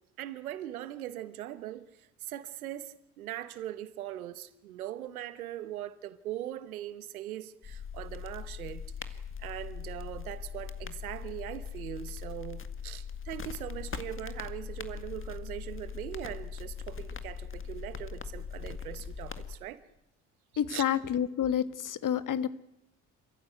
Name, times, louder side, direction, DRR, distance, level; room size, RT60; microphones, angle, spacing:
voice 1, 0.2-19.8 20.7-20.8, right 13 dB, 90° right, 1.2 m, -41 dB
sound 1, 7.6-19.6, left 7 dB, 30° left, 2.0 m, -41 dB
voice 2, 20.6-22.5, left 9 dB, 45° left, 1.6 m, -29 dB
27.0 x 15.0 x 9.3 m
hypercardioid pair, 55°, 42 cm